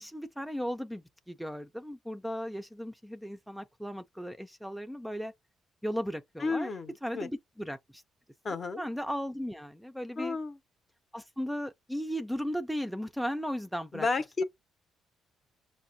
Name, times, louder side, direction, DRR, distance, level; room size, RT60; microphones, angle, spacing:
voice 1, 0.0-5.3 5.8-6.7 7.0-8.0 8.5-10.4 11.1-14.1, equal, ahead, 0.4 m, -36 dB
voice 2, 6.4-7.3 8.4-8.8 10.2-10.6 13.9-14.4, left 4 dB, 40° left, 0.7 m, -32 dB
6.0 x 2.1 x 2.7 m
cardioid pair, 90°, 0 cm